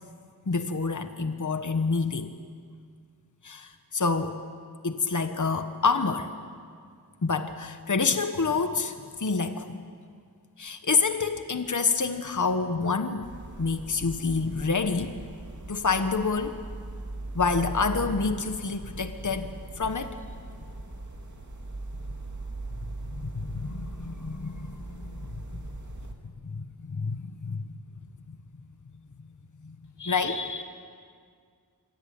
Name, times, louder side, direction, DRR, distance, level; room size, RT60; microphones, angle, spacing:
voice 1, 0.5-2.3 3.4-4.4 4.8-6.3 7.2-8.9 9.2-9.8 10.6-13.3 13.6-15.2 15.7-16.6 17.3-20.2 23.1-25.6 26.4-27.8 29.6-29.8 30.1-30.3, left 4 dB, 50° left, 8 dB, 1.3 m, -28 dB
sound 1, 13.2-26.1, right 2 dB, 45° right, 2.7 m, -40 dB
voice 2, 30.0-30.6, left 4 dB, 85° left, 6 dB, 2.0 m, -35 dB
25.5 x 25.0 x 8.9 m, 2.1 s
wide cardioid pair, 70°, 39 cm